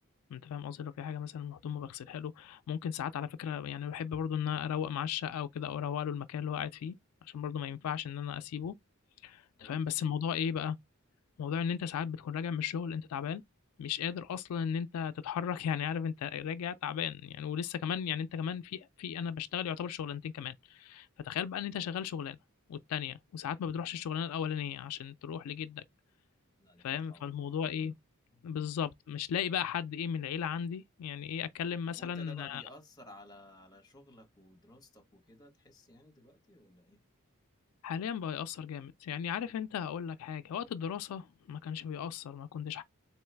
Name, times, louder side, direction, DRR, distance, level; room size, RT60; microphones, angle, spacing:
voice 1, 0.3-6.9 7.2-8.7 9.2-10.8 11.4-13.4 13.8-22.4 22.7-25.8 26.8-27.9 28.4-32.6 37.8-42.8, left 8 dB, 80° left, 0.3 m, -36 dB
voice 2, 9.6-10.1 26.6-27.9 28.3-28.7 31.9-37.0, left 1 dB, 20° left, 1.0 m, -56 dB
3.8 x 3.0 x 3.3 m
head